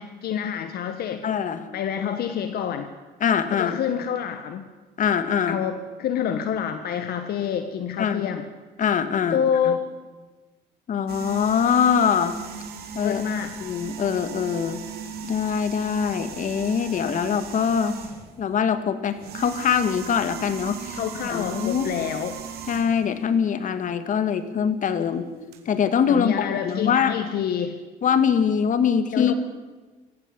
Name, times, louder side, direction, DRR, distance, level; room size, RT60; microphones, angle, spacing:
voice 1, 0.0-1.2 1.7-2.9 3.5-4.7 5.5-8.4 9.3-9.9 13.0-13.6 20.9-22.4 26.1-27.8 29.1-29.3, left 8 dB, 65° left, 9 dB, 1.6 m, -27 dB
voice 2, 1.2-1.7 3.2-3.8 5.0-5.6 8.0-8.3 8.8-9.8 10.9-12.4 12.9-13.2 13.6-14.8 15.2-17.9 18.4-21.0 21.2-21.9 22.7-25.2 25.7-27.2 28.0-29.3, left 7 dB, 50° left, 11 dB, 2.1 m, -23 dB
sound 1, 11.1-18.4 19.1-23.1 24.9-25.0 25.5-25.6, right 7 dB, 70° right, 4.1 m, -37 dB
24.0 x 15.0 x 8.6 m, 1.3 s
cardioid pair, 110°, 17 cm